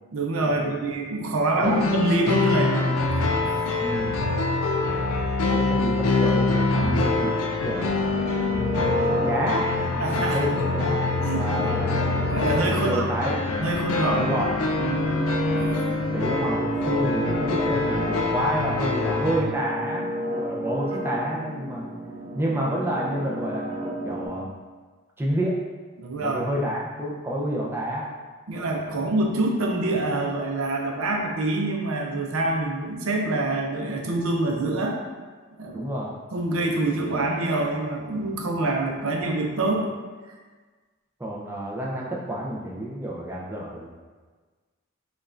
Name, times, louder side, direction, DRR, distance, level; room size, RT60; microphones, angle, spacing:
voice 1, 0.1-3.0 6.7-7.1 10.0-10.4 11.2-11.8 12.3-13.0 13.6-14.3 14.8-15.3 26.0-26.4 28.5-35.0 35.6-35.9 36.3-39.9, right 2 dB, 80° right, 1 dB, 0.6 m, -26 dB
sound 1, 1.6-19.4, left 3 dB, 85° left, 0.4 m, -25 dB
voice 2, 3.8-4.2 5.4-8.3 9.1-9.9 10.3-11.0 11.3-12.0 12.8-13.4 14.2-14.5 16.1-21.9 22.3-23.7 24.0-24.5 25.2-25.6 26.2-28.1 28.9-29.1 35.7-36.1 41.2-43.9, right 1 dB, 10° right, -4 dB, 0.5 m, -29 dB
sound 2, 8.1-24.3, right 1 dB, 30° right, 0.9 m, -32 dB
5.3 x 2.4 x 2.5 m, 1.4 s
head